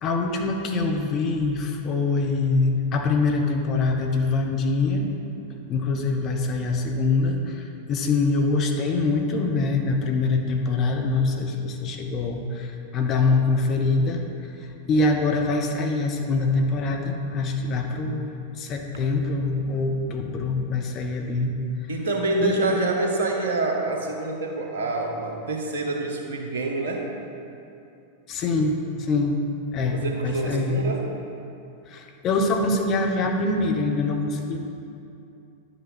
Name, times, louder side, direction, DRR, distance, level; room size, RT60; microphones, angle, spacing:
voice 1, 0.0-5.1 5.7-14.2 14.9-21.5 22.4-22.6 28.3-29.3 29.7-30.8 31.9-34.6, left 3 dB, 35° left, 2 dB, 1.0 m, -24 dB
voice 2, 21.9-27.0 29.9-31.1, right 2 dB, 60° right, 1 dB, 1.3 m, -26 dB
11.0 x 7.2 x 4.3 m, 2.6 s
figure-of-eight pair, 90°, 0 cm